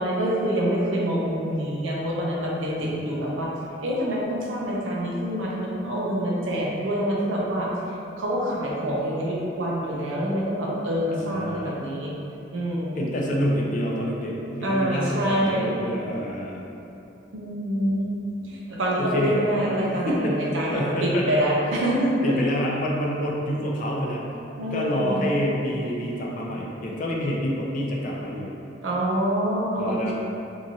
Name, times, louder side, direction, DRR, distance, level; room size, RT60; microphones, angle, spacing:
voice 1, 0.0-3.5 3.8-7.7 8.2-12.1 12.5-13.0 14.6-16.0 17.3-18.1 18.4-22.4 24.6-25.3 28.8-30.1, equal, 85° right, -4 dB, 0.5 m, -26 dB
voice 2, 2.8-3.1 11.1-11.8 13.0-14.3 14.6-16.7 19.0-19.4 19.9-21.5 22.2-24.3 24.7-28.5 29.8-30.1, equal, 45° left, -2 dB, 0.4 m, -27 dB
2.9 x 2.6 x 2.6 m, 2.8 s
head